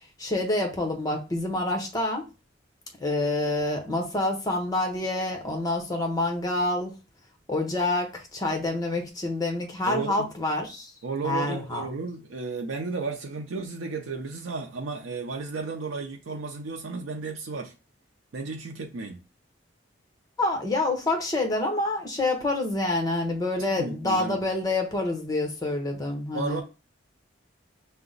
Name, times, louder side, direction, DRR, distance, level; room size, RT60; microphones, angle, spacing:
voice 1, 0.2-2.2 3.0-6.9 7.5-10.9 11.2-11.8 20.4-26.6, left 2 dB, 20° left, 0.9 m, -27 dB
voice 2, 9.9-10.3 11.0-17.7 18.3-19.2 23.6-24.4 26.3-26.6, right 4 dB, 85° right, 0.5 m, -33 dB
5.6 x 2.1 x 3.9 m
head